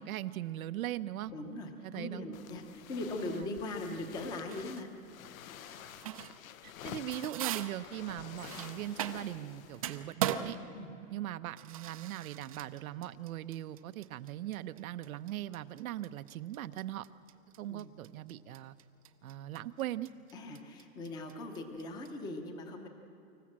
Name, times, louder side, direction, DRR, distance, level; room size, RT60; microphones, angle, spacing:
voice 1, 0.0-1.3 1.8-2.3 3.2-3.5 6.0-6.3 6.6-10.6 11.1-17.0 17.6-18.8 19.2-20.1, right 13 dB, 85° right, 11 dB, 0.8 m, -40 dB
voice 2, 1.3-4.9 10.7-10.9 17.6-17.9 20.3-22.9, left 2 dB, 10° left, 5 dB, 0.7 m, -40 dB
sound 1, 2.3-10.1, left 11 dB, 75° left, 0.9 m, -50 dB
sound 2, 4.5-4.9 5.6-6.5 6.8-9.5 9.7-22.1, right 10 dB, 25° right, 0.4 m, -40 dB
25.5 x 14.5 x 7.5 m, 2.8 s
supercardioid pair, 180°, 41 cm